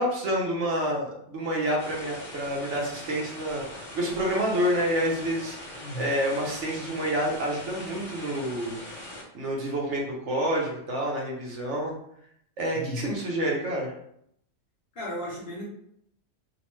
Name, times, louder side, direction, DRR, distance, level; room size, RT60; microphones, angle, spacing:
voice 1, 0.0-3.6 3.9-5.6 5.9-8.8 9.3-11.9 12.6-13.9, equal, 65° right, -2 dB, 1.0 m, -28 dB
sound 1, 1.8-9.2, left 1 dB, 30° left, 0.7 m, -41 dB
voice 2, 5.7-6.1 12.7-13.1 14.9-15.6, left 1 dB, 50° left, -5 dB, 1.1 m, -35 dB
2.9 x 2.1 x 3.0 m, 0.71 s
omnidirectional pair, 1.3 m